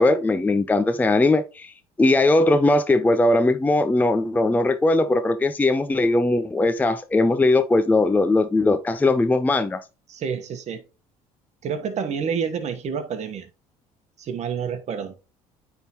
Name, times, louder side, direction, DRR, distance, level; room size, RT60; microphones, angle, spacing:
voice 1, 0.0-1.7 2.0-9.8, left 2 dB, 10° left, 0.4 m, -19 dB
voice 2, 10.1-10.8 11.6-13.5 14.2-15.1, right 6 dB, 50° right, 1.2 m, -28 dB
9.1 x 3.6 x 3.0 m
supercardioid pair, 85°, 15 cm